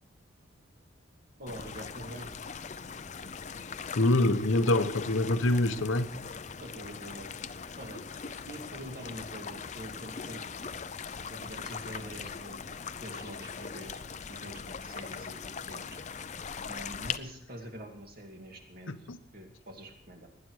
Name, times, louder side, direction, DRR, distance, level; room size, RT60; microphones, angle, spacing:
voice 1, 1.4-2.3 6.6-7.3 7.8-8.0 8.4-10.4 11.3-12.6 13.0-14.0 14.3-16.0 16.7-18.9 19.3-20.3, equal, 50° right, 2.3 m, -45 dB
sound 1, 1.5-17.2, left 6 dB, 35° left, 0.5 m, -41 dB
voice 2, 3.9-6.1 18.9-19.2, left 2 dB, 90° left, 1.0 m, -25 dB
19.5 x 10.0 x 4.8 m
head